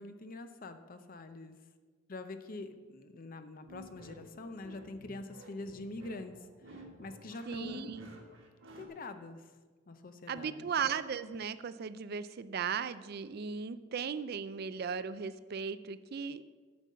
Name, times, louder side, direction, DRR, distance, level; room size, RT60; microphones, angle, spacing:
voice 1, 0.0-1.6 2.1-6.4 6.7-7.9 8.8-9.5 9.9-10.7, left 2 dB, 45° left, 9 dB, 0.6 m, -45 dB
sound 1, 3.7-8.9, right 1 dB, 65° right, 1.5 m, -52 dB
voice 2, 7.5-8.1 10.3-16.4, right 6 dB, 50° right, 14 dB, 0.4 m, -37 dB
9.3 x 5.4 x 7.4 m, 1.4 s
head